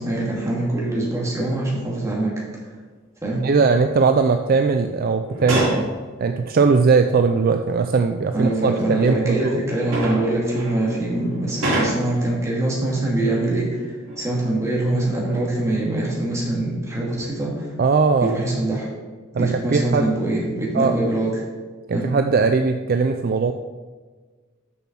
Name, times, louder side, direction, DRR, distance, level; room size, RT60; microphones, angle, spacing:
voice 1, 0.0-2.7 3.2-3.4 8.3-17.7 18.2-18.9 19.4-21.4 21.9-22.1, right 2 dB, 15° right, -4 dB, 2.3 m, -24 dB
voice 2, 3.4-5.9 6.2-9.5 17.8-18.4 19.3-20.1 20.7-21.0 21.9-23.5, right 4 dB, 45° right, 7 dB, 0.4 m, -19 dB
sound 1, 5.2-5.9 7.1-7.2 8.4-12.2 14.0-14.5 14.9-15.7 16.2-16.4, right 1 dB, 75° right, 3.0 m, -28 dB
6.9 x 6.0 x 6.0 m, 1.4 s
head